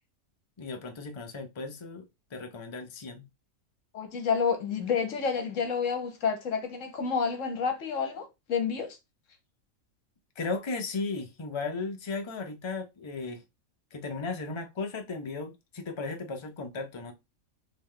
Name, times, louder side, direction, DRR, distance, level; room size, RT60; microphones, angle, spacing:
voice 1, 0.6-3.2 10.4-13.4 13.9-17.1, left 3 dB, 30° left, 0.5 m, -36 dB
voice 2, 3.9-9.0, left 6 dB, 65° left, 1.2 m, -29 dB
3.3 x 3.0 x 3.7 m
omnidirectional pair, 1.4 m